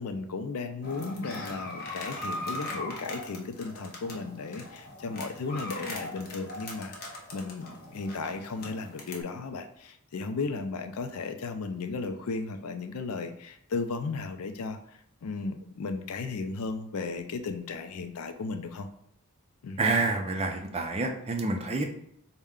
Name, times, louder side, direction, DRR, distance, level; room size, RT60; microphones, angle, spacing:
voice 1, 0.0-6.9 7.3-18.9 19.6-19.8, left 4 dB, 80° left, 7 dB, 0.4 m, -35 dB
sound 1, 0.8-9.2, left 1 dB, 45° left, 0.7 m, -40 dB
voice 2, 19.8-21.8, right 3 dB, 30° right, 4 dB, 0.4 m, -28 dB
4.3 x 2.1 x 3.6 m, 0.71 s
head